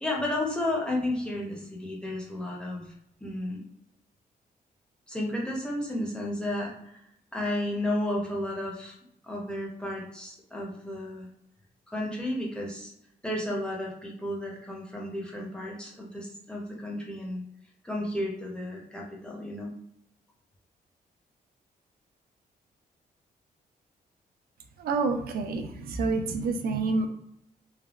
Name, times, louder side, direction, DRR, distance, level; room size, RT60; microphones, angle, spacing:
voice 1, 0.0-2.8 3.2-3.6 5.1-7.0 7.3-9.0 9.2-11.3 11.9-12.9 13.2-17.4 17.8-19.7, left 1 dB, 5° left, -2 dB, 0.7 m, -32 dB
voice 2, 24.8-27.1, right 3 dB, 80° right, 5 dB, 0.4 m, -28 dB
3.3 x 2.0 x 2.4 m, 0.75 s
wide cardioid pair, 135°, 16 cm